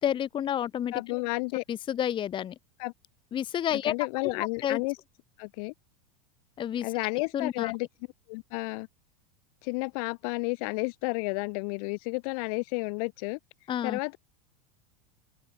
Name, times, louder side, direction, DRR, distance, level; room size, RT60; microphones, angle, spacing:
voice 1, 0.0-0.9 1.7-2.5 3.3-3.9 4.2-4.8 6.6-6.9 7.3-7.7 13.7-14.0, left 10 dB, 25° left, 1.0 m, -30 dB
voice 2, 0.9-1.6 2.8-2.9 3.9-4.9 5.4-5.7 6.8-7.9 8.3-8.9 9.6-13.4 13.8-14.2, left 30 dB, 60° left, 3.1 m, -31 dB
open air
supercardioid pair, 140°, 21 cm